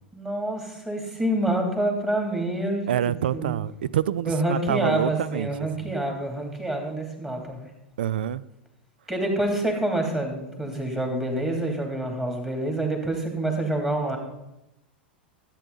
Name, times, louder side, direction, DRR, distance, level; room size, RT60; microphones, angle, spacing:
voice 1, 0.1-2.9 3.3-3.5 4.3-7.7 9.1-14.2, right 1 dB, 10° right, 2.8 m, -27 dB
voice 2, 2.9-5.9 8.0-8.4, right 10 dB, 65° right, 0.4 m, -27 dB
13.5 x 8.6 x 4.0 m
figure-of-eight pair, 90°, 6 cm